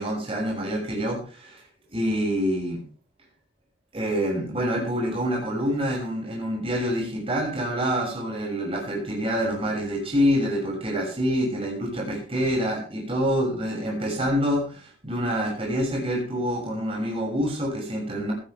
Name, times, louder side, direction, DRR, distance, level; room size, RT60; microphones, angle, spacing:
voice 1, 0.0-1.6 1.9-2.8 3.9-18.3, equal, 35° right, -2 dB, 6.5 m, -26 dB
17.0 x 14.5 x 3.4 m, 0.38 s
head